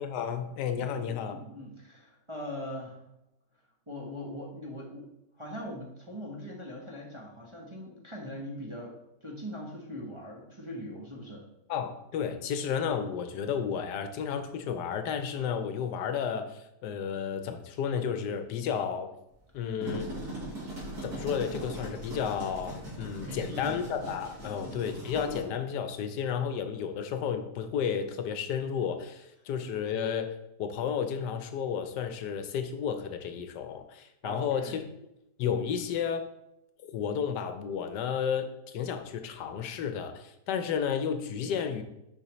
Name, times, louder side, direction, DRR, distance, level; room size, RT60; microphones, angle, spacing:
voice 1, 0.0-1.4 11.7-19.1 19.5-20.1 21.0-34.8 35.4-36.2 36.8-38.5 38.7-41.8, left 7 dB, 80° left, 8 dB, 1.2 m, -32 dB
voice 2, 0.8-3.1 3.9-5.1 5.4-11.4 23.3-23.8 24.4-24.8 34.2-34.8, left 1 dB, 20° right, -3 dB, 0.8 m, -41 dB
sound 1, 19.6-25.4, right 1 dB, 65° right, 3.1 m, -39 dB
6.8 x 5.4 x 3.0 m, 0.84 s
omnidirectional pair, 1.8 m